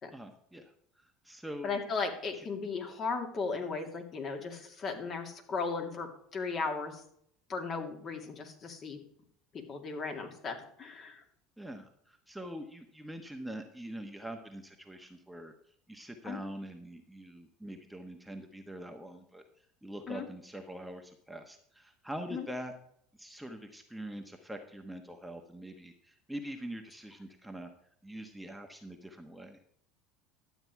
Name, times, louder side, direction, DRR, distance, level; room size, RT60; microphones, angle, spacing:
voice 1, 0.1-1.8 2.3-2.5 11.6-15.5 15.9-19.4 19.8-22.7 23.2-27.7 28.0-29.6, right 1 dB, 5° right, 4 dB, 1.2 m, -44 dB
voice 2, 1.6-7.0 7.5-9.0 9.5-11.2 16.2-16.4 20.1-20.3 22.3-22.5, left 4 dB, 40° left, 4 dB, 2.4 m, -36 dB
12.0 x 7.9 x 4.7 m, 0.67 s
supercardioid pair, 95°, 0 cm